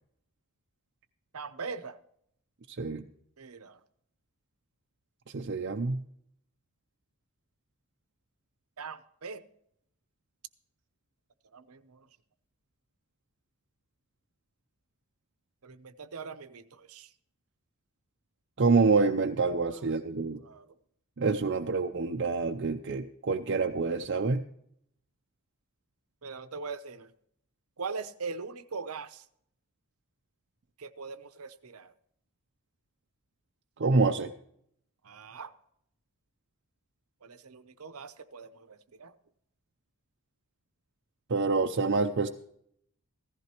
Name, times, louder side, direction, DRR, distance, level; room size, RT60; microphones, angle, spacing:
voice 1, 1.3-2.0 3.4-3.8 8.8-9.4 11.5-12.1 15.6-17.1 19.6-20.0 20.4-20.7 26.2-27.1 27.8-29.2 30.8-31.9 35.0-35.5 37.2-39.1, right 4 dB, 80° right, 12 dB, 0.8 m, -41 dB
voice 2, 5.3-6.0 18.6-20.4 21.2-24.4 33.8-34.3 41.3-42.3, right 4 dB, 50° right, 4 dB, 0.5 m, -27 dB
16.0 x 14.5 x 2.9 m, 0.70 s
head